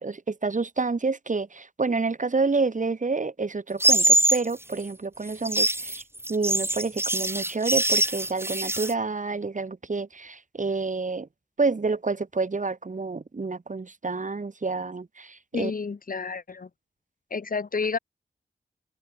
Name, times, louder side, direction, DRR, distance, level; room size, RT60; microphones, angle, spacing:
voice 1, 0.0-6.0 6.3-11.3 11.6-15.7, right 4 dB, 50° right, 4.8 m, -28 dB
sound 1, 3.8-4.4 5.3-8.9, right 1 dB, 15° right, 1.1 m, -23 dB
voice 2, 15.5-16.7 17.3-18.0, left 4 dB, 60° left, 2.9 m, -30 dB
cardioid pair, 45°, 16 cm